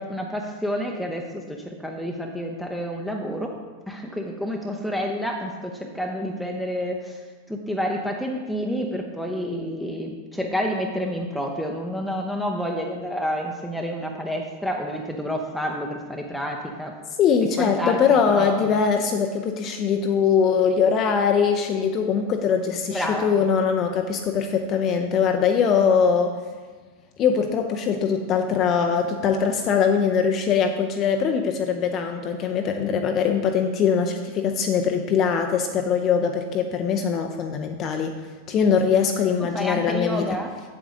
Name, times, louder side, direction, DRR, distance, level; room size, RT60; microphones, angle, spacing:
voice 1, 0.0-3.5 3.9-7.2 7.5-16.9 17.6-18.0 18.3-18.7 22.9-23.3 39.5-40.5, equal, ahead, 0 dB, 0.7 m, -29 dB
voice 2, 17.2-26.4 27.2-38.2 38.5-40.3, left 6 dB, 35° left, 4 dB, 0.6 m, -22 dB
8.0 x 8.0 x 3.8 m, 1.5 s
figure-of-eight pair, 90°, 0 cm